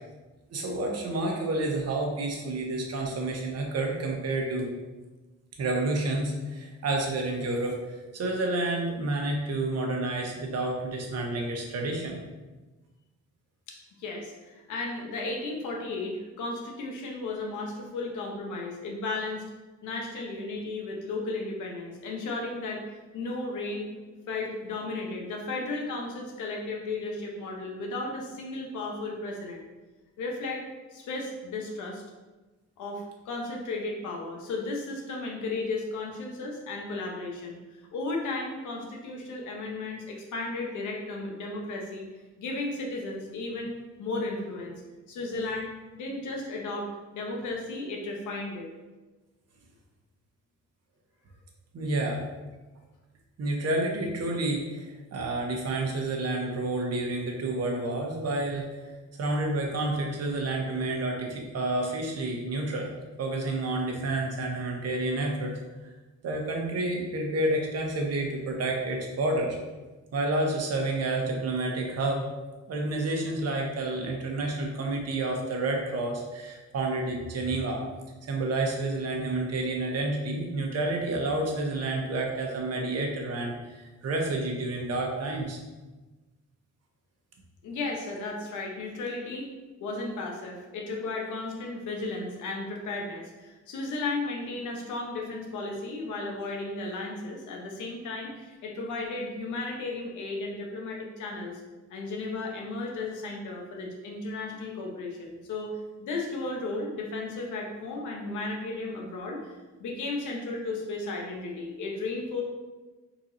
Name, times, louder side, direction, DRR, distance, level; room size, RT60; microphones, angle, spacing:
voice 1, 0.5-4.7 5.6-12.2 51.7-52.2 53.4-58.9 59.2-62.9 63.2-65.5 65.8-65.9 66.2-69.6 70.1-72.3 72.7-77.8 78.2-85.6, right 2 dB, 55° right, 1 dB, 1.1 m, -29 dB
voice 2, 13.7-19.5 19.8-22.9 23.1-23.9 24.3-29.7 30.2-30.6 30.9-32.0 32.8-37.6 37.9-42.1 42.4-44.7 45.1-48.7 87.6-89.5 89.8-101.6 101.9-109.5 109.8-112.4, left 2 dB, 80° left, 0 dB, 1.0 m, -34 dB
4.6 x 3.9 x 2.7 m, 1.2 s
cardioid pair, 90°, 30 cm